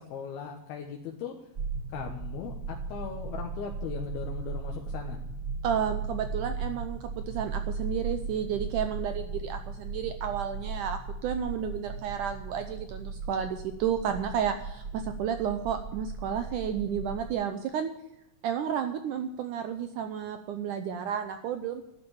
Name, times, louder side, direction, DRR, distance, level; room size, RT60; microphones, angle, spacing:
voice 1, 0.0-1.5 1.9-5.2, left 6 dB, 85° left, 0 dB, 3.2 m, -38 dB
sound 1, 1.6-17.3, right 4 dB, 55° right, 1.0 m, -37 dB
voice 2, 5.6-17.9 18.4-21.8, right 8 dB, 75° right, 8 dB, 2.0 m, -32 dB
12.0 x 10.0 x 7.1 m, 0.83 s
omnidirectional pair, 4.3 m